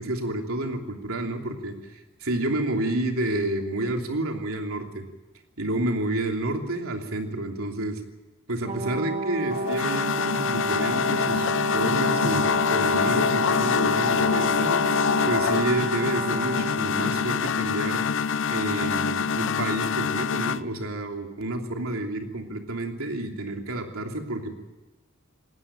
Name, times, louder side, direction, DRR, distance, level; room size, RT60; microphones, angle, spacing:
voice 1, 0.0-5.0 5.6-8.0 8.5-14.8 15.3-18.0 18.5-24.5, right 1 dB, 90° right, 3 dB, 3.1 m, -29 dB
Brass instrument, 8.6-17.4, right 3 dB, 30° right, 1.2 m, -31 dB
sound 1, 9.5-20.6, left 6 dB, 65° left, 0.6 m, -25 dB
20.0 x 18.0 x 8.9 m, 1.2 s
head